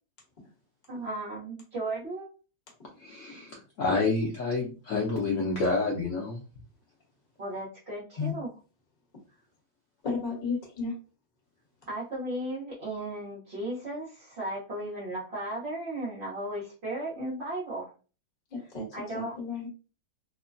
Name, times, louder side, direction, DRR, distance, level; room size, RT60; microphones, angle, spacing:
voice 1, 0.9-2.3 7.4-8.5 11.9-17.9 18.9-19.3, right 1 dB, 45° right, -8 dB, 1.0 m, -35 dB
voice 2, 3.0-6.4, left 3 dB, 90° left, -1 dB, 0.7 m, -28 dB
voice 3, 10.0-10.9 18.5-18.9 19.1-19.7, left 4 dB, 30° left, -2 dB, 1.1 m, -32 dB
3.1 x 2.1 x 2.5 m, 0.35 s
omnidirectional pair, 2.0 m